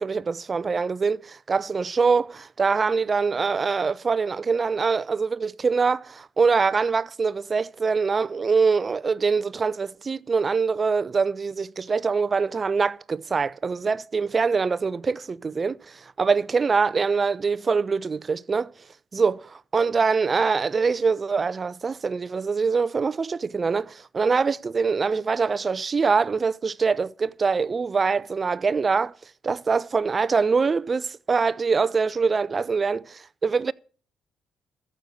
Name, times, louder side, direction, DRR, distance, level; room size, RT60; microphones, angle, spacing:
voice 1, 0.0-18.7 19.1-29.1 29.4-33.7, right 5 dB, 35° right, 0.6 m, -24 dB
14.0 x 6.5 x 8.3 m
cardioid pair, 90°, 0 cm